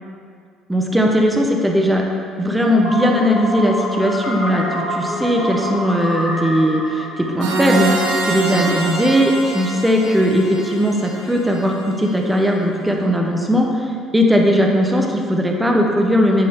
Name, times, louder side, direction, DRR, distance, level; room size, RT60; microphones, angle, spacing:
voice 1, 0.7-2.0 2.4-16.5, equal, 5° right, 1 dB, 0.6 m, -18 dB
sound 1, 2.6-8.5, left 1 dB, 80° left, 1.3 m, -27 dB
sound 2, 7.4-12.1, right 2 dB, 60° right, 0.9 m, -25 dB
9.4 x 3.5 x 4.3 m, 2.2 s
cardioid pair, 165°, 0 cm